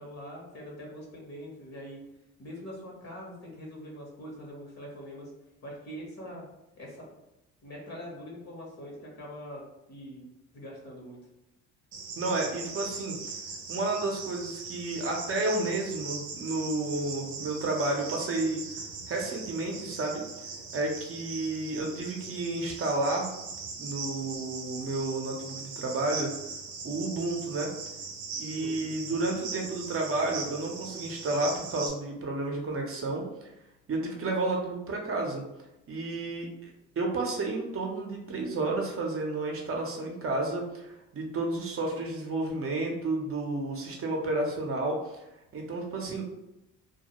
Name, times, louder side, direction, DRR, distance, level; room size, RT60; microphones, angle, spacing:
voice 1, 0.0-2.0 2.4-5.3 5.6-6.4 6.8-7.1 7.6-9.6 9.9-10.3 10.5-11.2 28.6-28.9, equal, 50° left, -2 dB, 1.0 m, -43 dB
Cricket, 11.9-31.9, right 5 dB, 85° right, 0.6 m, -40 dB
voice 2, 12.2-13.2 13.7-18.8 19.1-20.2 20.7-23.3 23.8-26.3 26.8-27.7 28.4-33.2 33.9-35.4 35.9-45.2 45.5-46.2, right 2 dB, 40° right, 0 dB, 0.6 m, -31 dB
2.3 x 2.0 x 2.9 m, 0.90 s
supercardioid pair, 75°, 35 cm